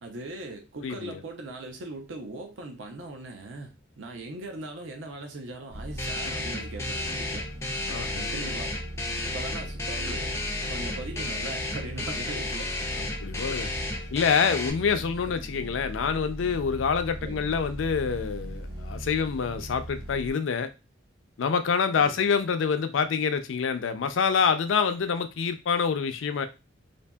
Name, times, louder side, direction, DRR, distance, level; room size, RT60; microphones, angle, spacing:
voice 1, 0.0-7.4 8.1-8.7 9.2-10.4 10.7-13.2 14.0-14.1 14.5-14.6 15.3-15.4 17.2-17.4 22.0-22.2, right 2 dB, 75° right, 0.5 m, -40 dB
voice 2, 0.8-1.2 7.9-8.3 13.0-13.7 14.1-20.7 21.4-26.5, left 6 dB, 80° left, 0.4 m, -26 dB
sound 1, 5.7-20.3, right 1 dB, 60° right, 1.2 m, -39 dB
sound 2, 6.0-14.7, left 2 dB, 15° left, 0.4 m, -33 dB
2.7 x 2.6 x 2.2 m
head